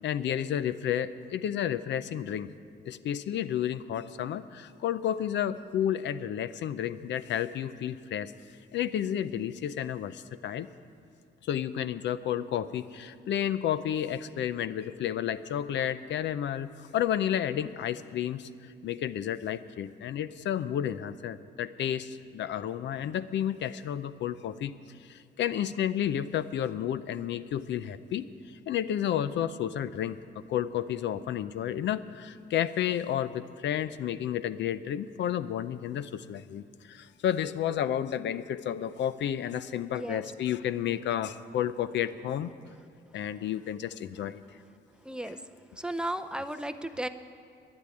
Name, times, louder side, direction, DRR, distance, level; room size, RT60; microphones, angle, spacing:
voice 1, 0.0-2.5 2.9-8.3 8.7-10.7 11.4-18.5 18.8-24.7 25.0-28.3 28.7-42.5 43.1-44.4, left 10 dB, 80° left, 14 dB, 0.5 m, -31 dB
voice 2, 45.1-45.4 45.8-47.1, right 1 dB, 5° right, 8 dB, 0.5 m, -34 dB
12.0 x 10.5 x 9.6 m, 2.3 s
cardioid pair, 130°, 18 cm